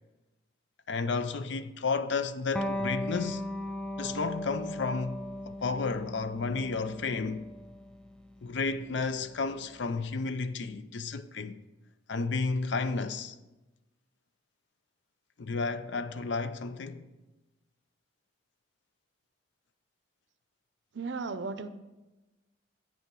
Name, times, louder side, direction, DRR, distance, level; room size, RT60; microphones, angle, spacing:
voice 1, 0.9-3.5 4.0-7.5 8.4-11.6 12.1-13.4 15.4-17.1, left 4 dB, 60° left, 0.5 m, -32 dB
Electric guitar, 2.5-9.7, left 1 dB, 5° left, 0.3 m, -38 dB
voice 2, 20.9-21.7, right 4 dB, 60° right, 0.5 m, -35 dB
8.9 x 5.7 x 6.1 m
head